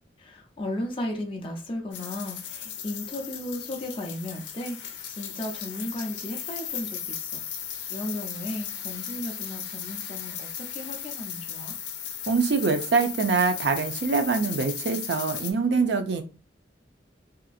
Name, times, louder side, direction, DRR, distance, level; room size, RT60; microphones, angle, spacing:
voice 1, 0.2-7.4 7.9-11.7, left 1 dB, 30° left, 0.5 m, -35 dB
sound 1, 1.9-15.5, left 8 dB, 90° left, 0.5 m, -36 dB
voice 2, 12.3-16.2, right 4 dB, 70° right, 0.5 m, -24 dB
2.8 x 2.4 x 2.4 m
head